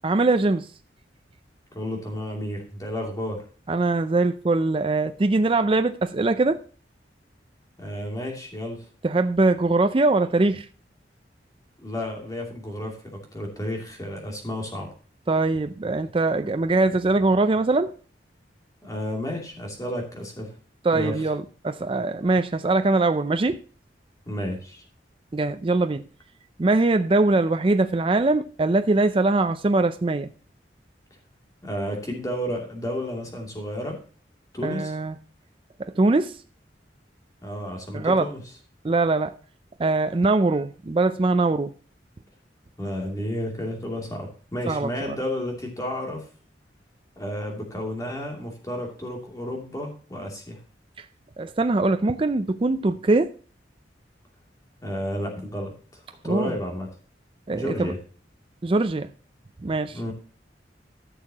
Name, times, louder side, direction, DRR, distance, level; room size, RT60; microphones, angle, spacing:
voice 1, 0.0-0.7 3.7-6.6 9.0-10.6 15.3-17.9 20.8-23.6 25.3-26.0 26.6-30.3 34.6-35.2 36.0-36.4 37.9-38.3 38.8-39.3 39.8-41.7 44.7-45.1 51.0-51.1 51.4-53.3 56.2-56.5 57.5-57.9 58.6-59.1 59.6-60.0, right 2 dB, 30° right, 0.4 m, -22 dB
voice 2, 1.7-3.4 7.8-8.8 11.8-14.9 18.8-20.5 20.9-21.2 24.2-24.8 31.6-34.0 34.5-34.9 37.4-38.4 42.8-46.3 47.2-50.6 54.8-56.9 57.5-58.0 59.9-60.1, left 1 dB, 20° left, 2.8 m, -32 dB
14.5 x 6.5 x 2.9 m
head